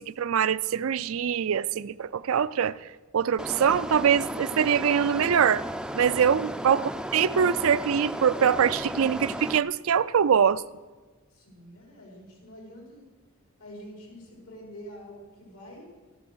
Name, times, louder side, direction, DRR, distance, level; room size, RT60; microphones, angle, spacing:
voice 1, 0.0-2.8 3.1-5.6 5.9-10.6, right 7 dB, 70° right, 16 dB, 0.4 m, -23 dB
sound 1, 3.4-9.6, equal, 5° right, 0.4 m, -34 dB
voice 2, 11.3-13.1 13.6-15.9, equal, 85° left, -2 dB, 5.4 m, -46 dB
14.0 x 11.5 x 6.2 m, 1.3 s
head